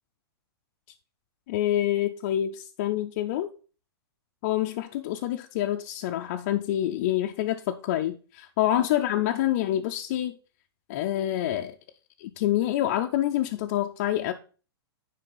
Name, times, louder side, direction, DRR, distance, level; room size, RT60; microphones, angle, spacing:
voice 1, 1.5-3.5 4.4-10.4 10.9-11.7 12.2-14.3, left 12 dB, 30° left, 0.4 m, -27 dB
9.7 x 3.3 x 5.2 m
hypercardioid pair, 165°, 14 cm